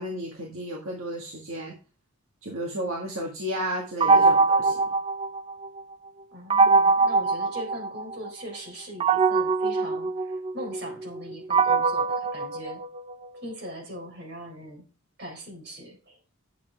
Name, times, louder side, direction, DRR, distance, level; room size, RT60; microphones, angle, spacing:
voice 1, 0.0-1.7 2.4-4.8, equal, 65° right, -1 dB, 1.8 m, -33 dB
sound 1, 4.0-5.8 6.5-8.3 9.0-13.3, right 4 dB, 25° right, 0.3 m, -23 dB
voice 2, 4.0-4.8 6.3-12.8 13.4-14.9 15.2-16.2, equal, 50° right, 1 dB, 4.0 m, -40 dB
10.0 x 7.5 x 3.4 m, 0.35 s
head